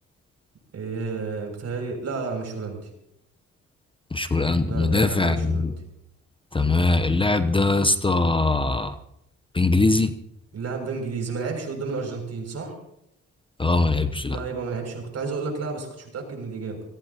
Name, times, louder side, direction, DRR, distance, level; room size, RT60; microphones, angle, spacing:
voice 1, 0.7-2.9 4.6-5.7 10.5-12.8 14.3-16.8, right 4 dB, 55° right, 2 dB, 6.7 m, -31 dB
voice 2, 4.1-5.7 6.5-9.0 9.5-10.1 13.6-14.4, left 2 dB, 15° left, 9 dB, 0.9 m, -21 dB
28.0 x 17.5 x 2.9 m, 0.81 s
cardioid pair, 90°, 30 cm